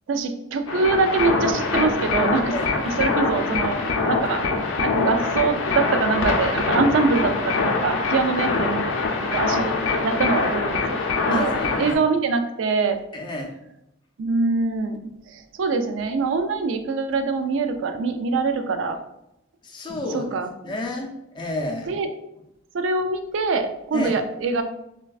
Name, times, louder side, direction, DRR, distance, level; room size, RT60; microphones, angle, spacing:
voice 1, 0.1-2.5 2.8-3.8 4.1-4.4 4.8-8.9 9.2-9.8 10.0-11.0 11.3-13.0 14.2-15.0 15.3-19.0 20.1-20.5 21.9-22.1 22.7-24.6, right 4 dB, 80° right, 7 dB, 0.3 m, -24 dB
sound 1, 0.7-12.0, left 3 dB, 90° left, 0.4 m, -24 dB
voice 2, 11.3-11.9 13.1-13.5 19.6-20.3 20.6-21.9 23.9-24.2, left 2 dB, 25° left, 1 dB, 0.3 m, -30 dB
3.3 x 2.2 x 2.3 m, 0.84 s
head